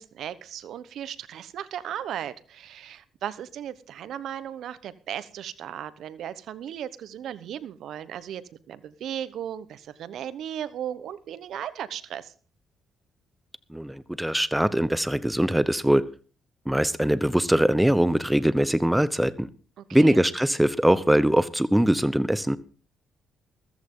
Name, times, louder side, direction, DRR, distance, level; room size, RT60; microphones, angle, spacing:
voice 1, 0.0-8.4 8.7-12.3 19.8-20.2, right 10 dB, 75° right, 15 dB, 1.0 m, -36 dB
voice 2, 13.7-16.0 16.7-19.5 19.9-22.6, right 1 dB, 5° right, 16 dB, 0.9 m, -22 dB
14.5 x 14.0 x 3.8 m, 0.37 s
cardioid pair, 90°, 0 cm